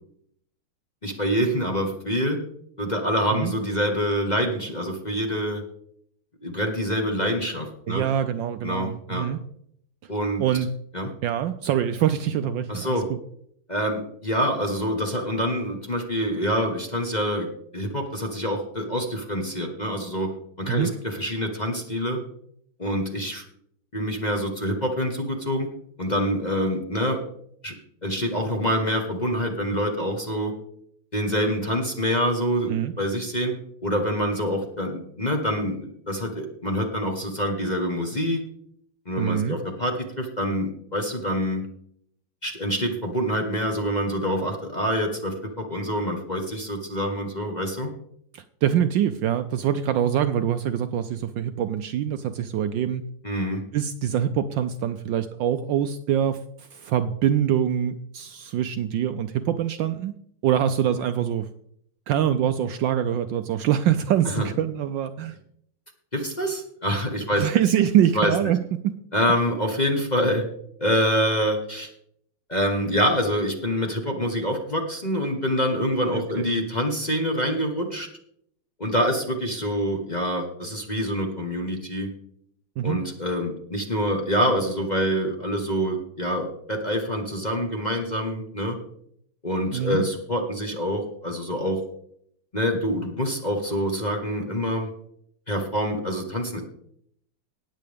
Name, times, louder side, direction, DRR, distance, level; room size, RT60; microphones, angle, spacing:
voice 1, 1.0-2.4 2.8-5.6 6.4-8.1 8.6-9.3 10.1-10.4 10.9-11.1 12.7-13.1 13.7-17.5 17.7-20.3 20.6-22.2 22.8-23.4 23.9-25.7 26.0-27.2 27.6-27.7 28.0-30.5 31.1-33.5 33.8-38.4 39.0-41.6 42.4-47.9 53.2-53.6 64.2-64.5 66.1-67.5 68.1-68.5 69.1-70.4 70.8-71.9 72.5-78.1 78.8-82.1 82.8-88.8 89.4-91.8 92.5-94.9 95.5-96.6, equal, 25° left, 2 dB, 1.2 m, -26 dB
voice 2, 7.9-9.4 10.4-10.7 11.2-13.0 20.7-20.9 32.7-32.9 39.2-39.6 48.3-53.0 53.7-60.1 60.4-61.5 62.1-65.4 67.3-69.0 76.1-76.5 82.8-83.0 89.7-90.0, right 10 dB, 75° right, 10 dB, 1.1 m, -24 dB
18.5 x 7.6 x 3.5 m, 0.68 s
omnidirectional pair, 2.3 m